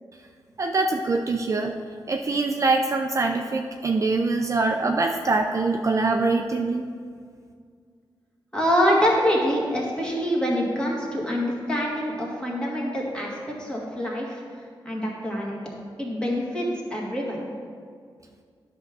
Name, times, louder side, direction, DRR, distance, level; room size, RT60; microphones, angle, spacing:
voice 1, 0.6-1.8 2.1-6.8, right 3 dB, 40° right, 4 dB, 0.4 m, -24 dB
voice 2, 8.5-14.4 14.9-15.6 16.0-17.4, equal, 10° left, -3 dB, 1.8 m, -25 dB
10.0 x 3.5 x 6.0 m, 2.1 s
wide cardioid pair, 100°, 8 cm